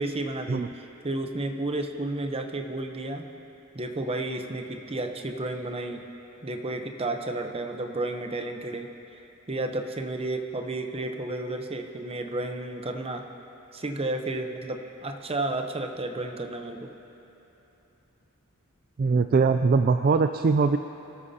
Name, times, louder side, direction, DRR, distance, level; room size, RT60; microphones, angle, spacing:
voice 1, 0.0-3.3 3.7-6.1 6.4-8.9 9.5-13.3 13.7-16.9, right 2 dB, 25° right, 5 dB, 0.8 m, -32 dB
voice 2, 19.0-20.8, right 4 dB, 45° right, 8 dB, 0.3 m, -21 dB
26.0 x 12.5 x 2.8 m, 3.0 s
head